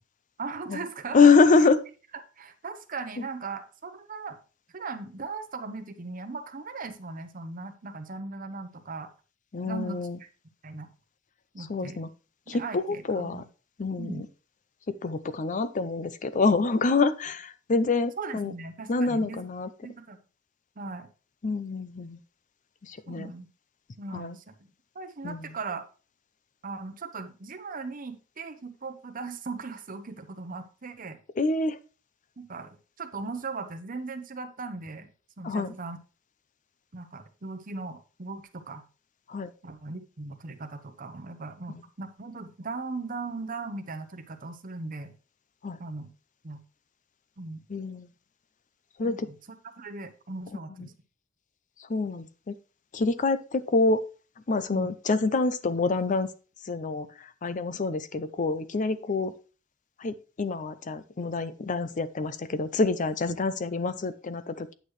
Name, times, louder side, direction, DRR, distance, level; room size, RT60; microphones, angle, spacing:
voice 1, 0.4-1.3 2.4-4.4 4.7-9.1 9.6-10.3 10.6-10.9 11.5-12.0 12.5-13.4 14.0-14.3 18.2-19.4 19.8-20.2 20.8-21.1 23.1-23.5 24.0-24.6 24.9-25.8 26.6-31.2 32.4-32.7 33.0-35.1 35.4-36.0 36.9-38.8 39.6-45.1 45.8-46.1 46.4-46.6 47.4-47.6 49.0-49.3 49.8-50.9 54.7-54.9, right 3 dB, 45° right, 7 dB, 0.9 m, -38 dB
voice 2, 1.1-1.8 3.2-3.3 9.5-10.2 11.6-12.1 12.5-13.4 13.8-14.2 14.9-18.5 18.9-19.7 21.4-22.2 22.8-23.3 24.1-24.4 25.2-25.5 31.4-31.8 35.4-35.7 39.3-39.5 41.7-41.8 45.6-45.8 47.7-48.1 49.0-49.3 50.8-50.9 51.9-52.6 52.9-54.0 54.5-56.3 56.6-59.3 60.0-64.7, left 4 dB, 40° left, 13 dB, 0.5 m, -26 dB
9.1 x 6.4 x 3.2 m, 0.36 s
head